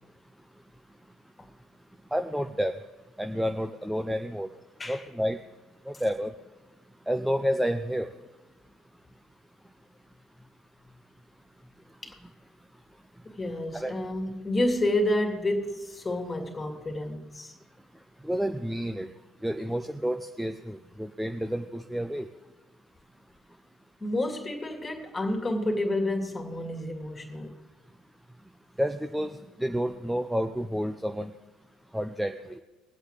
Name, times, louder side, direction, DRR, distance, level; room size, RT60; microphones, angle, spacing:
voice 1, 2.1-2.7 3.2-4.5 4.9-5.4 5.9-6.3 7.1-8.1 13.7-13.9 18.2-19.1 19.4-22.3 28.8-31.3 31.9-32.6, equal, 5° right, 0.6 m, -30 dB
voice 2, 13.2-17.5 24.0-27.6, left 1 dB, 20° left, 2.4 m, -29 dB
22.0 x 8.1 x 3.2 m
hypercardioid pair, 65°, 0 cm